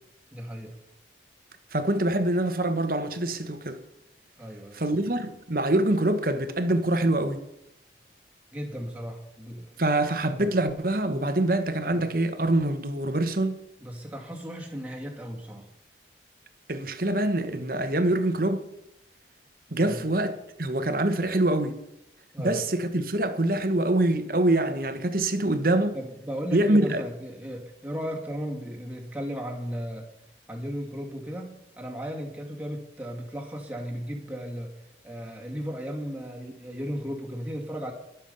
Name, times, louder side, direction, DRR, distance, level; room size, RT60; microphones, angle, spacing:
voice 1, 0.3-0.8 4.4-4.8 8.5-9.7 10.2-10.5 11.9-12.1 13.8-15.7 19.8-20.0 22.3-22.6 25.9-30.1 30.5-34.7 35.0-37.9, equal, 10° right, 2.6 m, -35 dB
voice 2, 1.7-3.8 4.7-7.4 9.8-13.6 16.7-18.7 19.7-21.8 22.4-25.9 26.5-27.0, right 1 dB, 50° right, 1.4 m, -25 dB
22.0 x 7.4 x 5.5 m
head